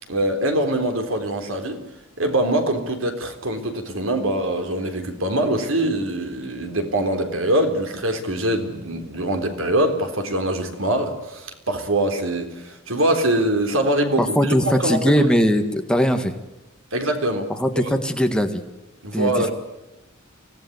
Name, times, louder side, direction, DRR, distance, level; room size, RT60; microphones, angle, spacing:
voice 1, 0.1-1.8 2.2-15.3 16.9-17.5 17.7-17.9 19.0-19.5, right 1 dB, 75° right, 6 dB, 3.8 m, -23 dB
voice 2, 14.2-16.3 17.6-18.6 19.1-19.5, equal, 5° left, 5 dB, 1.7 m, -20 dB
25.0 x 17.0 x 9.5 m, 0.99 s
head